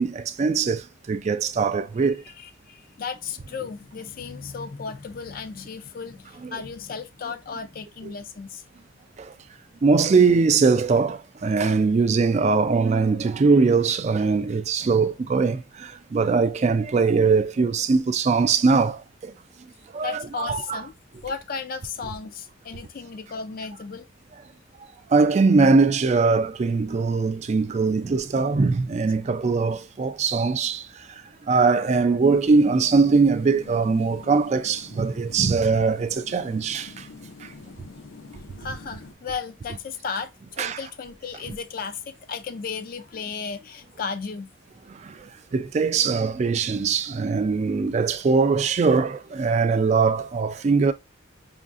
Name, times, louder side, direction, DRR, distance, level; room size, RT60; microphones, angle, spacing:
voice 1, 0.0-2.2 6.4-6.6 9.2-9.3 9.8-19.3 19.9-20.8 25.1-37.1 37.4-37.5 40.6-40.8 44.9-50.9, right 4 dB, 35° right, 0.3 m, -21 dB
voice 2, 2.4-8.6 20.0-20.9 21.2-24.1 38.6-44.5, left 5 dB, 45° left, 0.4 m, -35 dB
sound 1, 32.2-39.1, left 3 dB, 90° left, 0.6 m, -45 dB
5.3 x 2.5 x 2.4 m
head